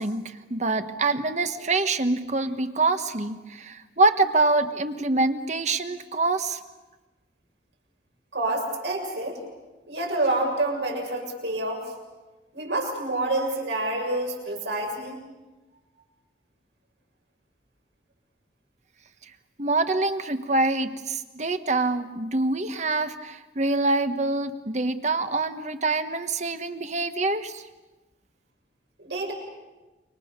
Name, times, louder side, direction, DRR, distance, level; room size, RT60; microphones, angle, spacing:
voice 1, 0.0-6.6 19.6-27.6, right 3 dB, 40° right, 9 dB, 1.4 m, -25 dB
voice 2, 8.3-9.4 9.9-11.9 12.5-15.2 29.0-29.3, right 2 dB, 80° right, 0 dB, 6.9 m, -28 dB
29.0 x 25.0 x 6.8 m, 1.1 s
head